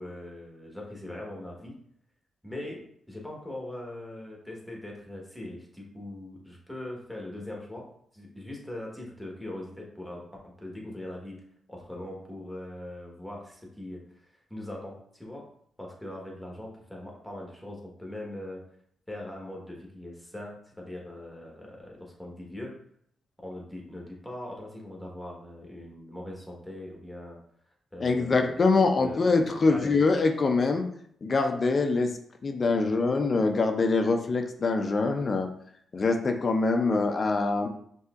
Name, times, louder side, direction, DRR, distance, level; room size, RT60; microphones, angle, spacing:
voice 1, 0.0-1.8 2.4-2.8 3.1-7.9 8.1-11.4 11.7-15.4 15.8-18.6 19.1-22.7 23.4-27.4 27.9-28.7 29.0-29.3 29.7-30.0 32.8-32.9, left 1 dB, 5° left, -1 dB, 1.2 m, -41 dB
voice 2, 28.0-30.9 31.2-32.1 32.4-35.5 35.9-37.7, left 3 dB, 45° left, 5 dB, 0.5 m, -24 dB
5.5 x 2.7 x 2.4 m, 0.67 s
cardioid pair, 70°, 0 cm